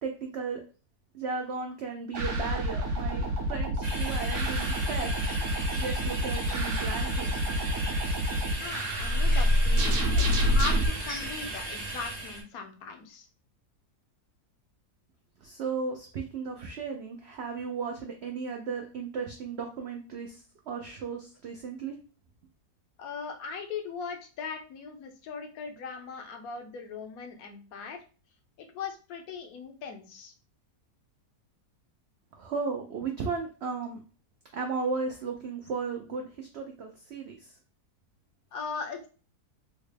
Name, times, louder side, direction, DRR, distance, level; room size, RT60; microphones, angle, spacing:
voice 1, 0.0-0.6 1.1-5.1 5.8-7.3 15.4-22.0 32.3-34.0 34.5-37.5, right 5 dB, 80° right, 3 dB, 0.5 m, -35 dB
sound 1, 2.1-10.9, equal, 55° right, 1.0 m, -27 dB
sound 2, 3.8-12.4, right 2 dB, 35° right, 0.7 m, -37 dB
voice 2, 8.6-13.3 23.0-28.0 28.6-30.3 38.5-39.1, left 5 dB, 75° left, 5 dB, 1.1 m, -39 dB
3.8 x 2.1 x 3.3 m, 0.37 s
omnidirectional pair, 1.7 m